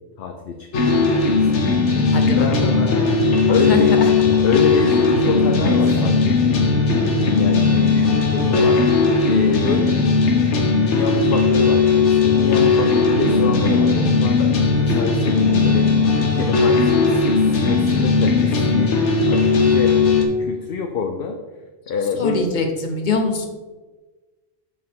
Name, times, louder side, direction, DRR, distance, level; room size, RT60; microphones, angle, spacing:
voice 1, 0.2-1.7 2.3-2.6 3.5-4.0 4.4-8.8 9.2-10.0 10.8-15.9 16.1-18.9 19.3-20.0 20.4-21.4 21.9-22.4, left 5 dB, 60° left, 5 dB, 0.8 m, -27 dB
sound 1, 0.7-20.2, left 4 dB, 90° left, 1.3 m, -17 dB
voice 2, 2.1-4.1 5.1-5.2 22.2-23.5, left 3 dB, 45° left, 4 dB, 1.0 m, -24 dB
7.0 x 6.5 x 3.6 m, 1.3 s
omnidirectional pair, 1.1 m